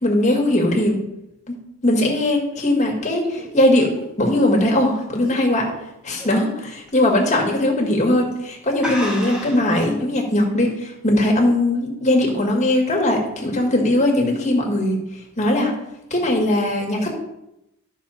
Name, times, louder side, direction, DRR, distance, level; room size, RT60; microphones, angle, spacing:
voice 1, 0.0-1.0 1.5-1.6 1.8-5.7 6.0-15.0 15.4-15.7 16.1-17.2, left 1 dB, 35° left, 0 dB, 2.0 m, -19 dB
sound 1, 2.6-5.8 6.2-6.5 6.9-7.0 7.8-8.0 8.3-8.4 8.8-9.7, left 1 dB, 5° right, 2.0 m, -32 dB
11.5 x 6.3 x 4.3 m, 0.87 s
head